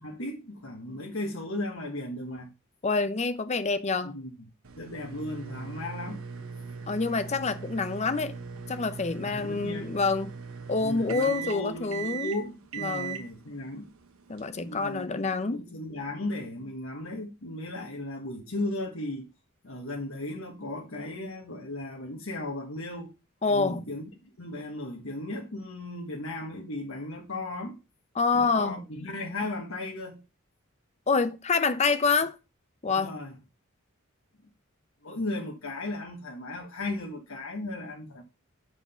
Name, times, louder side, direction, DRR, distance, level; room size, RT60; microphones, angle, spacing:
voice 1, 0.0-2.5 4.0-4.3 4.8-6.2 9.2-9.9 10.8-13.9 14.5-19.3 19.6-23.1 23.5-27.8 28.3-30.2 32.9-33.3 35.0-38.2, left 2 dB, 70° left, 1.5 m, -36 dB
voice 2, 2.8-4.2 6.9-8.4 8.7-10.3 10.7-12.3 12.8-13.2 14.3-15.6 23.4-23.8 28.2-28.7 31.1-32.4 32.8-33.2, left 4 dB, 30° left, 0.6 m, -27 dB
sound 1, 4.6-15.0, right 6 dB, 90° right, 1.2 m, -40 dB
7.7 x 4.9 x 5.5 m
head